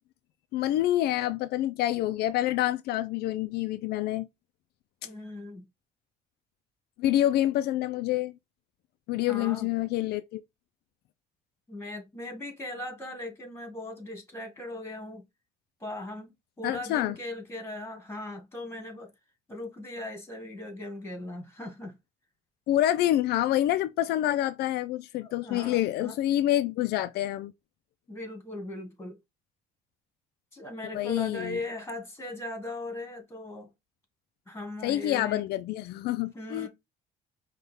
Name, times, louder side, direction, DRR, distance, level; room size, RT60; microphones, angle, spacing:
voice 1, 0.5-4.3 7.0-8.3 9.1-10.4 16.6-17.1 22.7-27.5 30.9-31.6 34.8-36.7, left 13 dB, 75° left, 0.4 m, -27 dB
voice 2, 5.0-5.6 9.3-9.7 11.7-15.2 15.8-16.3 16.6-19.1 19.5-21.9 25.2-26.2 28.1-29.2 30.5-33.7 34.5-35.4 36.3-36.7, left 2 dB, 15° left, 2.1 m, -39 dB
5.4 x 2.4 x 3.5 m
cardioid pair, 110°, 17 cm